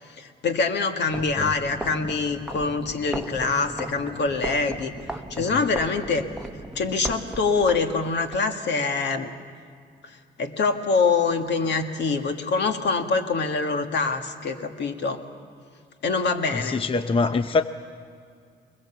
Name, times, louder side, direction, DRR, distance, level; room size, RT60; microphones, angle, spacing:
voice 1, 0.0-4.9 5.3-6.2 6.7-9.3 10.0-15.2 16.0-16.8, left 4 dB, 60° left, 5 dB, 1.7 m, -25 dB
sound 1, 1.1-8.4, right 1 dB, ahead, 1.0 m, -37 dB
voice 2, 16.5-17.6, left 4 dB, 25° left, 10 dB, 0.6 m, -24 dB
23.0 x 21.5 x 7.1 m, 2.2 s
cardioid pair, 90°, 20 cm